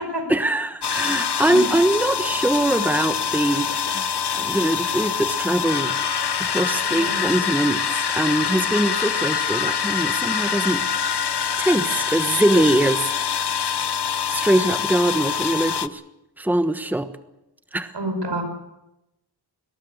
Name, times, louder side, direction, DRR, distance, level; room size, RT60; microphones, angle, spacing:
voice 1, 0.3-4.1 4.4-10.8 11.6-13.5 14.3-16.0 16.4-17.1 17.7-17.9, right 1 dB, 5° right, 10 dB, 1.2 m, -22 dB
sound 1, 0.8-15.9, left 7 dB, 75° left, 0.9 m, -25 dB
voice 2, 6.8-7.2 17.9-18.4, right 1 dB, 80° right, 7 dB, 5.1 m, -28 dB
22.0 x 19.5 x 8.0 m, 0.91 s
wide cardioid pair, 60°, 41 cm